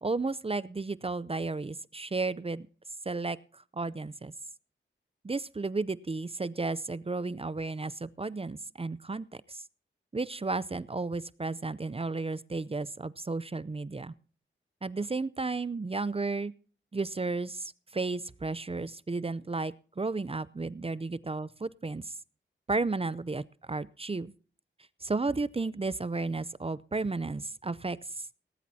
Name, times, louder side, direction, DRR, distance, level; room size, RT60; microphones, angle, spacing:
voice 1, 0.0-2.7 3.1-4.3 5.2-9.6 10.1-14.1 14.8-16.5 16.9-22.1 22.7-24.3 25.0-28.2, right 3 dB, 30° right, 18 dB, 0.6 m, -33 dB
18.0 x 14.5 x 2.8 m, 0.42 s
cardioid pair, 60°, 20 cm